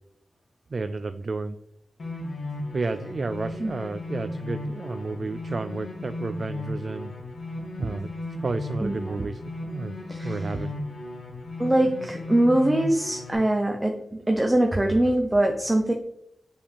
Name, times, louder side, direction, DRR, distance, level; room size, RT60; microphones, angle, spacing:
voice 1, 0.7-1.6 2.7-7.1 7.8-8.1 8.4-10.0 10.2-10.8, right 3 dB, 50° right, 10 dB, 0.3 m, -31 dB
sound 1, 2.0-13.3, left 2 dB, 70° left, 1.8 m, -35 dB
voice 2, 8.8-9.3 10.1-10.5 11.6-15.9, right 1 dB, 15° right, 2 dB, 0.7 m, -23 dB
7.7 x 5.1 x 3.4 m, 0.74 s
wide cardioid pair, 95°, 0 cm